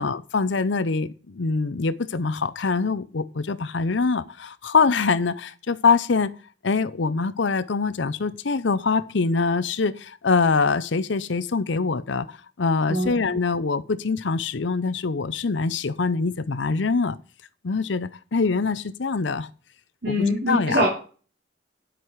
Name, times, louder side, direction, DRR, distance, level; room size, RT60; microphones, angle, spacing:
voice 1, 0.0-6.3 6.6-17.2 17.6-19.5 20.0-20.9, left 4 dB, 65° left, 0.6 m, -24 dB
voice 2, 20.0-20.9, equal, 55° right, 3.1 m, -23 dB
9.8 x 7.8 x 4.7 m
head